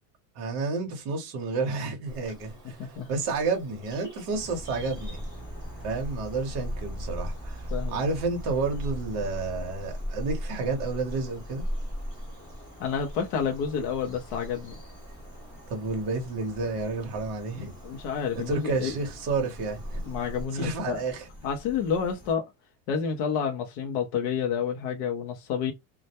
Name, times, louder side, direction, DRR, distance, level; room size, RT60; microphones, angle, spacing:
voice 1, 0.4-5.2 5.8-11.6 15.7-17.7 18.5-20.0 20.5-21.3, right 3 dB, 35° right, 0.8 m, -30 dB
Bird vocalization bird call bird song, 2.0-20.5, equal, 10° right, 0.9 m, -39 dB
sound 1, 4.3-22.3, equal, 20° left, 0.9 m, -47 dB
voice 2, 7.7-8.0 12.8-14.7 17.8-18.9 20.0-21.0 21.4-22.4 22.9-25.7, left 7 dB, 40° left, 0.5 m, -29 dB
2.1 x 2.1 x 2.8 m
cardioid pair, 175°, 50 cm